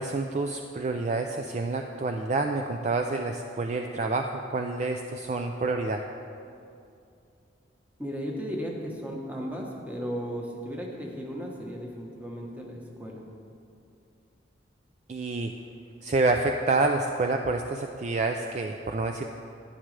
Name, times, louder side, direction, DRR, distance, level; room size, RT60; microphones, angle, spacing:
voice 1, 0.0-6.0 15.1-15.5 16.0-19.3, right 3 dB, 35° right, 4 dB, 0.3 m, -28 dB
voice 2, 8.0-13.3, equal, 10° right, -1 dB, 1.0 m, -35 dB
11.0 x 10.0 x 3.2 m, 2.5 s
head